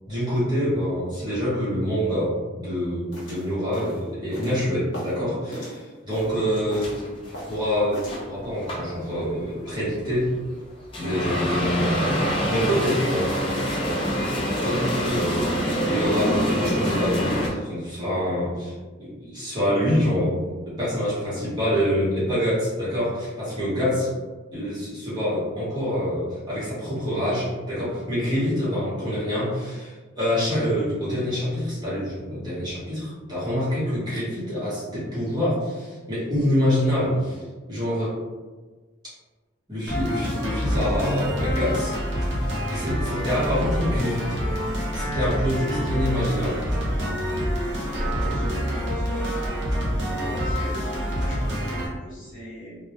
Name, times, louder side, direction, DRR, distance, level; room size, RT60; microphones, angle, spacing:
voice 1, 0.1-7.1 7.5-10.3 11.0-13.3 14.6-20.3 20.7-24.1 24.5-38.1 39.7-42.0 42.7-44.4 44.9-46.6, equal, 20° right, -10 dB, 0.9 m, -26 dB
sound 1, 3.1-5.2 5.5-6.4 6.7-7.6 7.9-8.2, equal, 75° left, 0.8 m, -38 dB
sound 2, 6.2-17.5, equal, 25° left, 0.3 m, -26 dB
sound 3, 39.9-51.9, equal, 70° right, 0.7 m, -26 dB
voice 2, 47.8-49.6 50.1-52.8, equal, 45° left, -8 dB, 0.9 m, -39 dB
2.2 x 2.1 x 2.8 m, 1.3 s
head